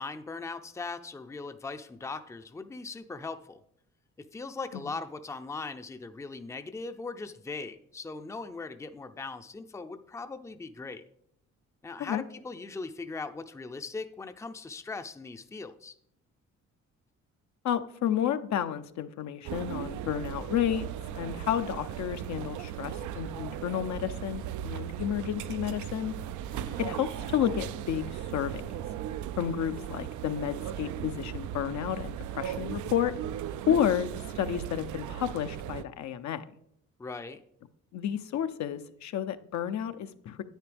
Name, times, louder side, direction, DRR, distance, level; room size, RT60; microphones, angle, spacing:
voice 1, 0.0-3.6 4.2-11.0 11.8-15.9 26.5-26.9 37.0-37.4, left 3 dB, 10° left, 9 dB, 0.5 m, -39 dB
voice 2, 17.6-20.9 21.1-26.1 26.8-28.8 29.4-33.1 33.7-36.4 37.9-40.4, left 10 dB, 65° left, 9 dB, 0.7 m, -31 dB
sound 1, 19.4-35.8, right 11 dB, 75° right, 0.5 m, -37 dB
10.5 x 8.9 x 3.4 m, 0.71 s
cardioid pair, 90°, 30 cm